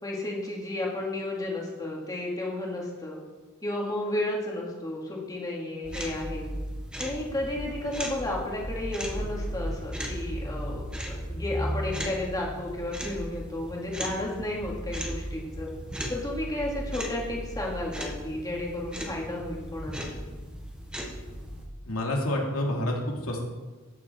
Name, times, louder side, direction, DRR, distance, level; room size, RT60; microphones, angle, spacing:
voice 1, 0.0-3.2 3.6-6.5 7.0-15.7 16.1-20.1, left 1 dB, 15° left, -3 dB, 2.7 m, -33 dB
sound 1, 5.8-21.7, equal, 5° right, 1.7 m, -36 dB
voice 2, 21.8-23.5, left 1 dB, 75° left, -1 dB, 2.8 m, -28 dB
14.5 x 9.0 x 4.6 m, 1.2 s
head